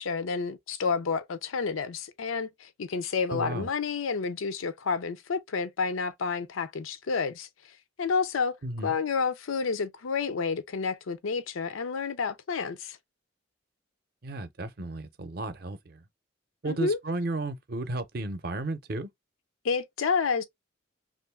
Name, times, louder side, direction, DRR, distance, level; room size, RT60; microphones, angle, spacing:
voice 1, 0.0-7.5 8.0-8.6 8.8-13.0 16.7-17.0 19.6-20.4, left 5 dB, 90° left, 0.5 m, -30 dB
voice 2, 3.3-3.7 8.6-8.9 14.2-16.0 16.6-19.1, right 2 dB, 50° right, 0.6 m, -33 dB
3.1 x 2.5 x 3.4 m
head